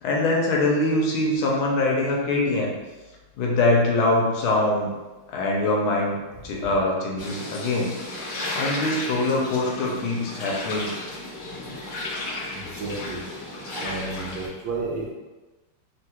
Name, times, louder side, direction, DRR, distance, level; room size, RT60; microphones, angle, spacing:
voice 1, 0.0-2.7 3.4-4.9 5.3-7.9 8.5-10.9, left 2 dB, 80° left, -1 dB, 1.4 m, -23 dB
sound 1, 7.2-14.5, left 2 dB, 55° left, 1.4 m, -33 dB
voice 2, 12.5-13.2 13.8-15.1, right 3 dB, 70° right, -3 dB, 1.3 m, -32 dB
3.6 x 2.3 x 2.8 m, 1.1 s
omnidirectional pair, 2.4 m